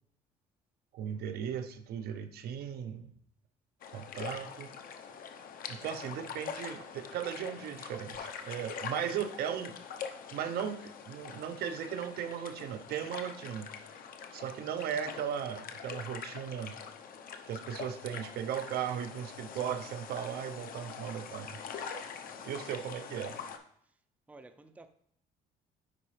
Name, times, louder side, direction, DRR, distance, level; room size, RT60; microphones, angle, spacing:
voice 1, 0.9-3.1 3.9-4.7 5.7-9.8 10.3-13.7 14.3-16.8 17.5-21.6 22.4-23.4, right 9 dB, 65° right, 0.6 m, -37 dB
sound 1, 3.8-23.6, left 6 dB, 55° left, 0.7 m, -44 dB
voice 2, 24.3-24.9, right 2 dB, 10° right, 0.4 m, -53 dB
9.8 x 3.9 x 3.2 m
cardioid pair, 110°, 17 cm